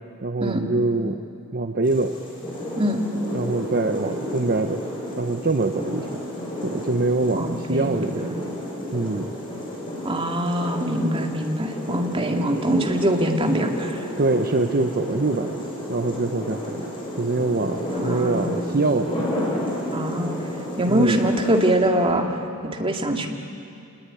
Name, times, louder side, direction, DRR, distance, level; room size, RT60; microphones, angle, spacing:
voice 1, 0.2-1.2 1.5-2.2 3.3-4.8 5.2-6.3 6.6-8.5 8.9-9.3 11.2-11.3 12.2-12.3 14.2-16.9 17.2-19.2 20.9-21.2, right 3 dB, 45° right, 6 dB, 0.9 m, -24 dB
sound 1, 1.8-21.7, left 1 dB, 25° left, 7.2 m, -32 dB
voice 2, 7.3-8.3 10.0-14.0 17.9-18.8 19.9-20.4 20.8-22.4 22.6-23.3, right 1 dB, 25° right, 2 dB, 2.3 m, -23 dB
27.0 x 20.5 x 9.9 m, 2.5 s
head